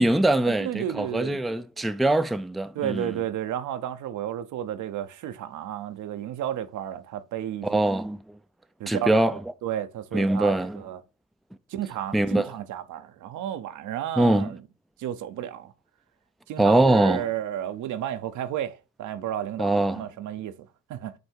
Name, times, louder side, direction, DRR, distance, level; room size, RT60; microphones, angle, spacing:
voice 1, 0.0-3.1 7.6-8.4 8.9-9.4 10.1-10.8 12.1-12.6 14.2-14.5 16.6-17.3 19.6-20.1, right 1 dB, ahead, 0.4 m, -23 dB
voice 2, 0.6-1.4 2.7-7.8 8.8-9.2 9.6-11.0 11.7-14.6 15.0-15.7 16.5-21.1, right 11 dB, 80° right, 0.8 m, -32 dB
8.1 x 2.7 x 4.5 m
cardioid pair, 90°, 30 cm